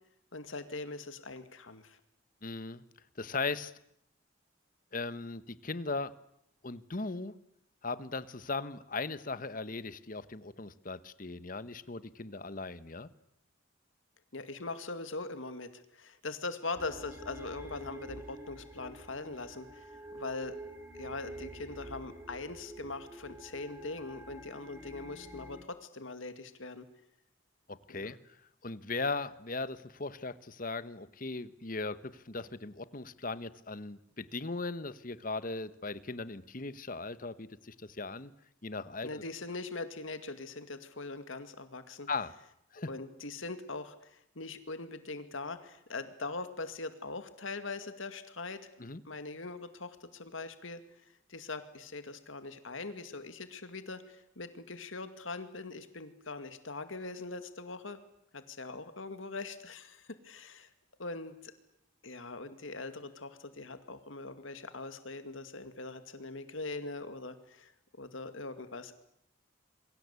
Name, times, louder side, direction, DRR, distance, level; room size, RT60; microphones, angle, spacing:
voice 1, 0.3-2.0 14.3-20.6 21.0-26.9 27.9-28.2 39.0-42.1 42.9-48.6 49.0-50.8 51.3-58.0 58.3-60.7 61.0-61.5 62.0-67.7 68.0-68.9, left 3 dB, 80° left, 9 dB, 2.3 m, -41 dB
voice 2, 2.4-2.8 3.2-3.7 4.9-6.1 6.6-7.3 7.8-13.1 27.7-28.4 28.6-38.3 38.6-39.2 42.1-42.3 42.7-42.9 48.8-49.0, left 3 dB, 45° left, 14 dB, 1.2 m, -38 dB
sound 1, 16.8-25.6, right 1 dB, 10° right, 3.2 m, -48 dB
27.5 x 23.0 x 8.3 m, 0.75 s
head